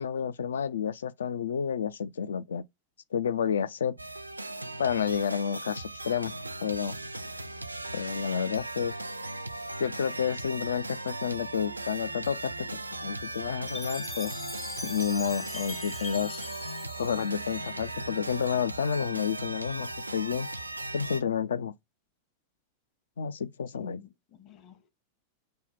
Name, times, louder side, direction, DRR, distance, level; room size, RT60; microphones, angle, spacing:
voice 1, 0.0-2.6 3.1-3.9 4.8-6.3 6.6-7.0 7.9-8.9 9.8-14.4 14.8-16.4 17.0-20.5 20.9-21.7 23.2-24.0, left 7 dB, 65° left, 0.3 m, -30 dB
sound 1, 4.0-21.2, right 2 dB, 85° right, 0.3 m, -38 dB
Chime, 13.7-17.9, left 3 dB, 15° left, 0.5 m, -42 dB
voice 2, 23.8-24.9, left 8 dB, 35° left, 0.9 m, -52 dB
5.4 x 2.1 x 4.1 m
figure-of-eight pair, 90°, 0 cm